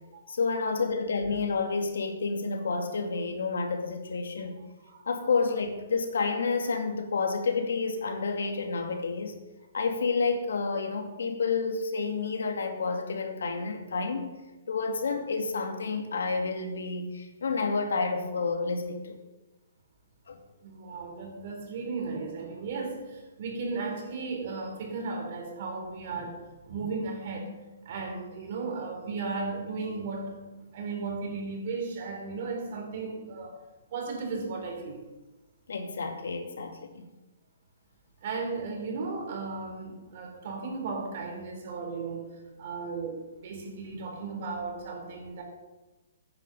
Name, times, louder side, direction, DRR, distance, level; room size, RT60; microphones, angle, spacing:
voice 1, 0.3-4.6 5.1-9.3 9.7-14.4 14.7-19.2 20.3-20.4 35.7-37.1, left 4 dB, 85° left, 5 dB, 2.4 m, -30 dB
voice 2, 20.6-26.4 26.6-27.5 27.8-30.4 30.7-33.6 33.9-35.1 38.2-42.3 42.6-45.4, right 4 dB, 45° right, 2 dB, 4.2 m, -35 dB
15.0 x 9.7 x 5.5 m, 1.1 s
hypercardioid pair, 160°, 0 cm